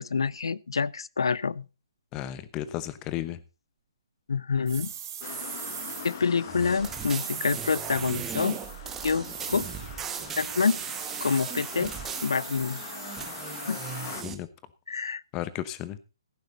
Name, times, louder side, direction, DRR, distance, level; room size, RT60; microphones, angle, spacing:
voice 1, 0.0-1.7 4.3-4.9 6.0-8.6 9.0-9.7 10.4-10.8 11.2-11.9 12.2-12.8 13.7-13.8 14.9-15.2, left 5 dB, 85° left, 0.6 m, -27 dB
voice 2, 2.1-3.4 14.2-14.5 15.3-16.0, left 13 dB, 20° left, 0.9 m, -34 dB
sound 1, 4.7-6.2 6.9-8.8 9.2-9.9 10.5-11.9, right 9 dB, 35° right, 3.5 m, -39 dB
sound 2, 5.2-14.2, left 8 dB, 35° left, 1.6 m, -43 dB
sound 3, 6.4-14.3, right 8 dB, 10° right, 1.0 m, -38 dB
15.5 x 9.2 x 4.0 m
hypercardioid pair, 160°, 3 cm